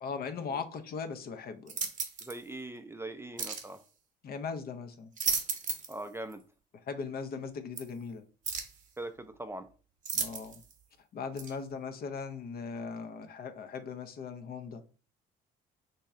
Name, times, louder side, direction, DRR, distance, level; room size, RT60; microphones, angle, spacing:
voice 1, 0.0-1.8 4.2-5.1 6.8-8.2 10.1-10.6 11.1-14.8, left 5 dB, 50° left, 0.6 m, -39 dB
sound 1, 1.7-2.4 3.4-3.7 4.9-6.0 6.3-6.4 7.8-7.9 8.4-8.8 10.0-10.7 11.4-11.5, right 5 dB, 40° right, 0.8 m, -34 dB
voice 2, 2.2-3.8 5.9-6.4 9.0-9.7, right 1 dB, 10° right, 0.4 m, -41 dB
3.1 x 2.7 x 3.5 m
hypercardioid pair, 65°, 20 cm